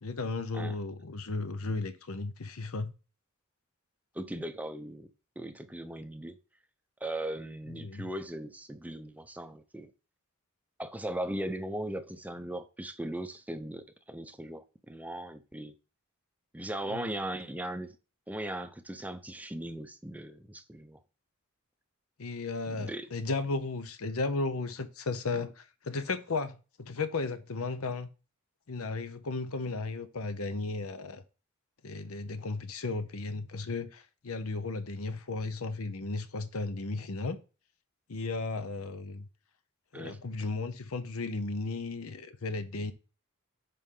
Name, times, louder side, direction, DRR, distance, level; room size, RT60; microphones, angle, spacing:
voice 1, 0.0-2.9 7.7-8.1 16.9-17.1 22.2-28.1 28.7-31.2 31.8-37.4 38.1-39.3 39.9-42.9, left 3 dB, 70° left, 0.8 m, -35 dB
voice 2, 4.1-5.1 5.4-6.4 7.0-9.9 10.8-15.7 16.5-18.0 18.3-21.0 22.7-23.1 39.9-40.2, right 1 dB, 5° right, 0.6 m, -38 dB
10.0 x 4.2 x 3.8 m
head